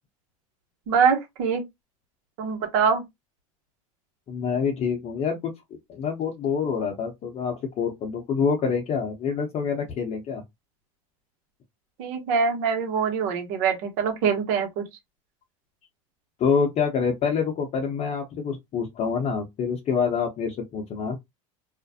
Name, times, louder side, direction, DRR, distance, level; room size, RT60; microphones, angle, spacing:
voice 1, 0.9-1.6 2.4-3.0 12.0-14.8, right 6 dB, 65° right, 1.0 m, -24 dB
voice 2, 4.3-5.5 5.9-10.4 16.4-21.2, left 6 dB, 40° left, 0.7 m, -26 dB
2.4 x 2.1 x 2.7 m
hypercardioid pair, 95°, 18 cm